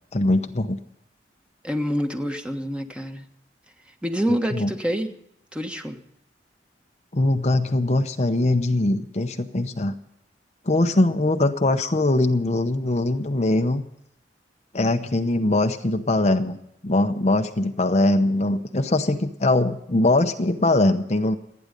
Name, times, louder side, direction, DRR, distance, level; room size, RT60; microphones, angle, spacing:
voice 1, 0.1-0.8 4.5-4.7 7.1-9.9 10.7-13.8 14.7-16.6 16.8-21.4, left 2 dB, 40° left, 6 dB, 0.8 m, -21 dB
voice 2, 1.6-3.2 4.0-5.1 5.5-6.0, equal, 5° right, 5 dB, 1.4 m, -26 dB
27.5 x 9.7 x 5.3 m, 0.79 s
head